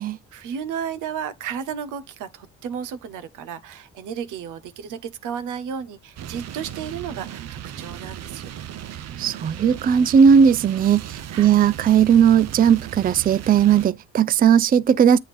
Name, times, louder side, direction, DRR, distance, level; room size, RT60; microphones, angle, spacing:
voice 1, 0.3-8.5 11.1-11.6, right 7 dB, 85° right, 0.9 m, -33 dB
sound 1, 6.2-13.9, right 10 dB, 60° right, 0.7 m, -36 dB
voice 2, 9.2-15.2, right 7 dB, 30° right, 0.4 m, -17 dB
8.2 x 3.7 x 5.1 m
cardioid pair, 90°, 30 cm